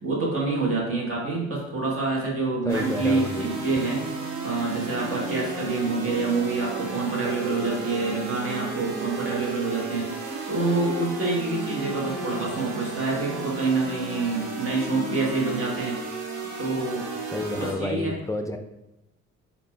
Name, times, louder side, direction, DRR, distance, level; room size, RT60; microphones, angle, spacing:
voice 1, 0.0-4.0 4.4-10.1 10.5-16.0 16.6-17.1 17.6-18.2, right 3 dB, 45° right, -2 dB, 1.5 m, -27 dB
voice 2, 2.7-3.5 17.3-18.6, left 2 dB, 10° left, 5 dB, 0.5 m, -30 dB
sound 1, 2.7-17.7, right 3 dB, 75° right, 1.0 m, -33 dB
4.2 x 2.9 x 4.2 m, 0.94 s
cardioid pair, 90°, 30 cm